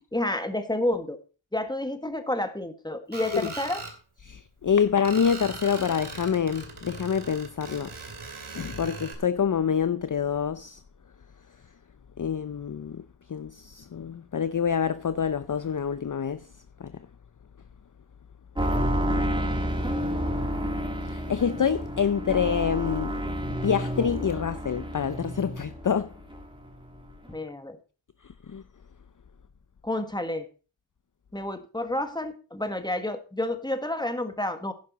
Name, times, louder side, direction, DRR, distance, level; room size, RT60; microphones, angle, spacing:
voice 1, 0.1-1.2 1.5-3.8 27.3-27.8 29.8-30.5 31.3-34.7, left 1 dB, 10° left, 1.6 m, -30 dB
Screech, 3.1-3.9 5.0-9.1, right 4 dB, 85° right, 2.8 m, -40 dB
voice 2, 4.2-7.9 8.6-10.8 12.2-13.0 13.3-16.4 16.8-16.9 21.1-23.1 23.6-26.1 28.5-28.6, left 7 dB, 40° left, 0.6 m, -26 dB
sound 1, 18.6-26.0 26.3-27.0 27.2-27.3, equal, 10° right, 2.8 m, -30 dB
11.0 x 10.5 x 4.1 m
wide cardioid pair, 90°, 48 cm